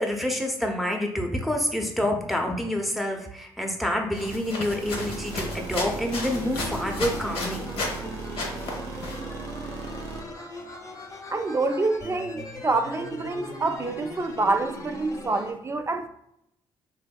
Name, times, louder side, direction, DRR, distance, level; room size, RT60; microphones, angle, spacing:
voice 1, 0.0-7.7, left 1 dB, ahead, 0.7 m, -27 dB
sound 1, 4.1-8.0 8.3-9.2, left 2 dB, 70° left, 0.9 m, -34 dB
sound 2, 4.8-10.2, right 5 dB, 90° right, 0.4 m, -37 dB
sound 3, 6.2-15.5, left 1 dB, 30° left, 0.7 m, -40 dB
voice 2, 11.3-16.1, right 3 dB, 25° right, 0.4 m, -27 dB
3.4 x 2.6 x 2.2 m
supercardioid pair, 60°, 10 cm